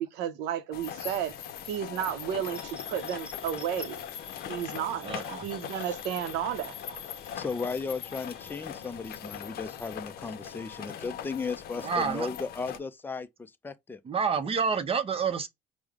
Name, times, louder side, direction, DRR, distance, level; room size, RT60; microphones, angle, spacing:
voice 1, 0.0-1.3 1.6-4.0 4.5-5.1 5.4-6.7, right 10 dB, 90° right, 0.6 m, -32 dB
sound 1, 0.7-12.8, left 9 dB, 65° left, 0.6 m, -40 dB
sound 2, 2.5-9.4, left 1 dB, 10° right, 1.3 m, -53 dB
voice 2, 5.0-5.5 11.8-12.3 14.0-15.5, right 6 dB, 35° right, 0.6 m, -28 dB
voice 3, 7.4-14.0, left 4 dB, 10° left, 0.4 m, -35 dB
4.8 x 2.1 x 3.5 m
cardioid pair, 110°, 17 cm